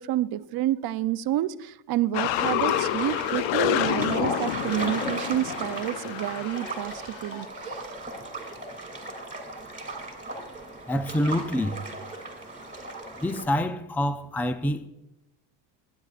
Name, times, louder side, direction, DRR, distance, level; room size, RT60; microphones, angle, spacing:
voice 1, 0.0-7.8, right 13 dB, 50° right, 0.7 m, -29 dB
sound 1, 2.1-6.9 7.2-7.3, left 12 dB, 65° left, 0.7 m, -28 dB
sound 2, 2.3-13.4, right 2 dB, 15° right, 2.7 m, -37 dB
voice 2, 10.9-11.8 13.1-14.9, left 1 dB, 5° left, 0.4 m, -26 dB
21.5 x 9.8 x 2.5 m
supercardioid pair, 95°, 48 cm